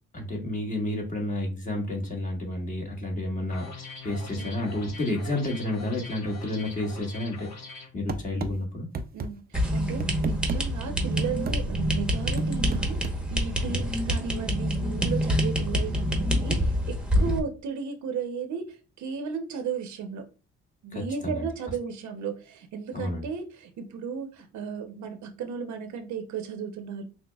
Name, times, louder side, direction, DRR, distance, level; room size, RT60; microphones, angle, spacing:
voice 1, 0.1-7.5 7.9-8.9 13.7-13.9 17.1-17.3 20.9-21.5 22.9-23.2, left 1 dB, 25° left, 0 dB, 1.5 m, -31 dB
sound 1, 3.5-7.9, left 4 dB, 60° left, 1.4 m, -42 dB
voice 2, 4.3-4.7 9.1-13.0 13.3-20.2 20.8-27.0, right 6 dB, 70° right, 6 dB, 0.8 m, -35 dB
sound 2, 8.1-8.5 8.9-9.3 9.8-10.6 11.2-11.6 12.4-13.2, right 4 dB, 30° right, 0.5 m, -32 dB
sound 3, 9.5-17.4, equal, 5° right, 1.0 m, -26 dB
5.9 x 2.1 x 2.3 m, 0.34 s
cardioid pair, 90°, 30 cm